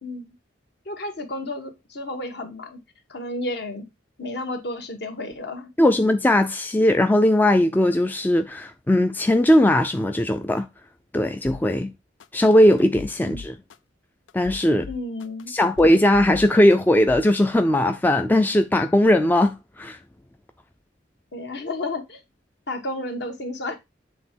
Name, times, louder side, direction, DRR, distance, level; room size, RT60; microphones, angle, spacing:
voice 1, 0.8-2.8 3.1-3.8 4.2-5.7 13.2-13.4 14.9-15.5 21.3-22.2 22.7-23.7, left 2 dB, 60° left, 1.4 m, -32 dB
voice 2, 5.8-10.7 11.1-11.9 12.3-13.5 14.3-14.9 15.5-20.0, left 1 dB, 10° left, 0.3 m, -19 dB
sound 1, 11.4-11.6 12.2-12.3 12.8-13.8 14.3-15.4 15.8-16.8 17.1-17.3, left 5 dB, 80° left, 0.4 m, -39 dB
7.4 x 3.3 x 4.4 m
head